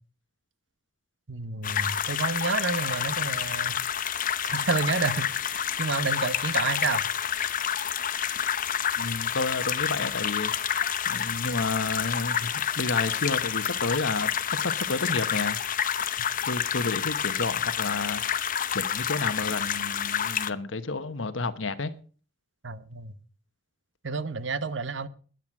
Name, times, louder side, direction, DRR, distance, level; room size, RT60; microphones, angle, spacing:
voice 1, 1.3-3.8 4.4-7.0 16.2-16.3 22.6-23.1 24.0-25.1, right 4 dB, 70° right, 1.0 m, -30 dB
sound 1, 1.6-20.5, left 8 dB, 45° left, 0.8 m, -29 dB
voice 2, 9.0-10.5 11.1-14.3 14.6-15.6 16.5-18.2 18.7-21.9, left 3 dB, 90° left, 1.2 m, -30 dB
14.0 x 10.5 x 6.0 m
head